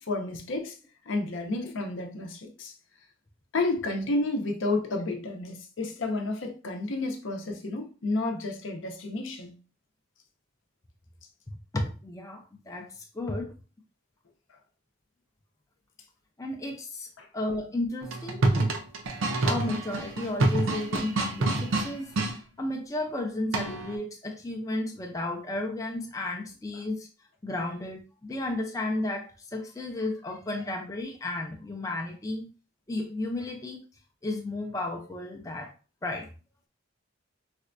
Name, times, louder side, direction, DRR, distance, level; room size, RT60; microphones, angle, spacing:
voice 1, 0.1-0.8 1.1-2.7 3.5-9.5 17.2-17.3, left 2 dB, 70° left, 0.6 m, -31 dB
voice 2, 11.7-12.9 13.1-13.5 16.4-17.1 17.3-18.7 19.4-27.1 27.4-32.5 32.9-33.8 34.2-35.7 36.0-36.3, left 2 dB, 15° left, 0.4 m, -33 dB
sound 1, 18.0-22.3 23.5-23.9, right 2 dB, 80° right, 0.6 m, -27 dB
4.2 x 2.2 x 2.5 m
head